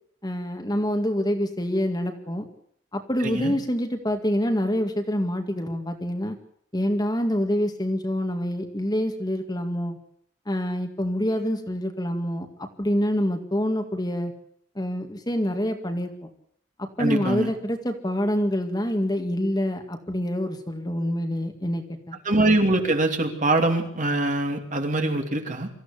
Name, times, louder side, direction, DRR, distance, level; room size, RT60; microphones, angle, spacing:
voice 1, 0.2-2.5 2.9-6.4 6.7-10.0 10.5-14.3 14.8-16.3 16.8-22.2, equal, 20° left, 5 dB, 2.0 m, -26 dB
voice 2, 3.2-3.5 17.0-17.5 22.2-25.7, right 2 dB, 40° right, 4 dB, 2.8 m, -23 dB
24.5 x 15.0 x 8.4 m, 0.65 s
head